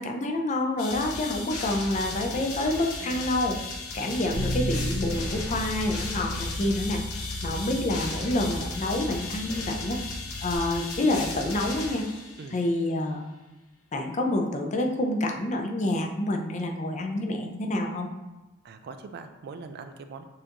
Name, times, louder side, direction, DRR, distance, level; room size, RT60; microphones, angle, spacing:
voice 1, 0.0-3.6 3.9-7.0 7.4-10.0 10.4-12.1 12.5-13.2 13.9-18.1, left 1 dB, 35° left, 2 dB, 0.5 m, -28 dB
sound 1, 0.8-12.7, left 3 dB, 80° left, 0.9 m, -36 dB
voice 2, 2.1-2.5 3.0-3.3 4.0-4.3 7.5-7.7 12.4-12.6 18.6-20.3, right 4 dB, 50° right, 8 dB, 0.3 m, -43 dB
Bass guitar, 4.3-10.6, left 1 dB, 65° right, 0.9 m, -35 dB
6.5 x 2.6 x 2.9 m, 1.1 s
head